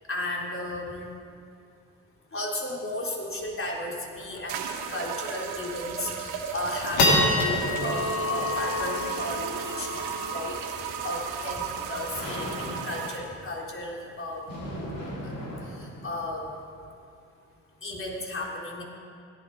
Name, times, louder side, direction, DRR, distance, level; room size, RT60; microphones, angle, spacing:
voice 1, 0.1-1.1 2.3-10.0 10.3-10.6 11.0-14.5 15.2-15.3 15.8-16.6 17.8-18.8, left 1 dB, 35° left, -2 dB, 3.7 m, -34 dB
sound 1, 3.5-3.6 3.8-3.9 4.3-4.6 5.1-5.2 5.7-6.1 6.5-13.1, left 2 dB, 80° left, 2.6 m, -29 dB
sound 2, 3.7-3.8 4.5-13.2, right 7 dB, 85° right, 1.2 m, -35 dB
sound 3, 5.8-16.2, equal, 65° left, 3.2 m, -39 dB
16.0 x 12.0 x 4.8 m, 2.5 s
supercardioid pair, 50°, 36 cm